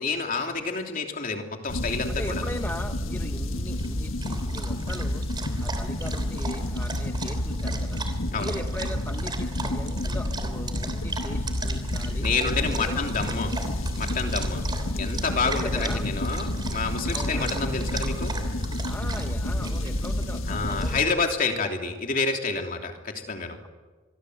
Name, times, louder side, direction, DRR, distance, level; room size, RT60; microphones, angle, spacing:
voice 1, 0.0-2.4 8.3-8.5 12.2-13.6 14.0-14.6 14.9-18.3 20.5-23.6, left 4 dB, 45° left, 3 dB, 3.1 m, -28 dB
sound 1, 1.7-21.0, left 1 dB, 85° left, 1.6 m, -29 dB
voice 2, 2.1-5.2 5.6-8.0 8.4-12.3 12.6-13.0 15.4-16.0 17.1-17.5 18.8-21.1, left 1 dB, 10° left, 5 dB, 1.0 m, -39 dB
Dog, 3.7-21.1, right 4 dB, 20° right, 3.3 m, -38 dB
27.0 x 22.5 x 8.0 m, 1.3 s
head